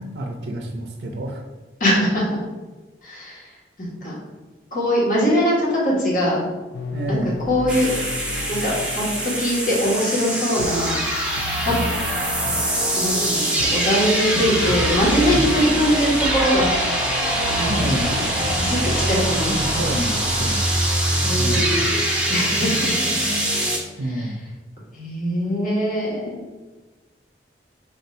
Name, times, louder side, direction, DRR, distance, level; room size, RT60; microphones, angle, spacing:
voice 1, 0.0-1.4 6.9-7.4 15.2-15.4 17.7-18.1 19.5-20.6 21.3-21.7 24.0-24.4, right 1 dB, 75° right, 1 dB, 0.5 m, -28 dB
voice 2, 1.8-2.2 3.0-3.4 3.8-4.1 4.7-6.4 7.1-7.2 7.5-7.9 8.5-11.0 11.6-11.7 12.9-16.7 17.5-17.8 18.1-18.2 18.6-19.9 21.2-22.0 22.3-23.0 24.1-24.3 24.9-26.4, equal, 50° left, -5 dB, 1.3 m, -22 dB
sound 1, 6.7-18.8, left 1 dB, 80° left, 0.3 m, -33 dB
sound 2, 7.7-23.8, right 1 dB, 5° right, 0.6 m, -23 dB
3.6 x 2.6 x 4.3 m, 1.2 s
head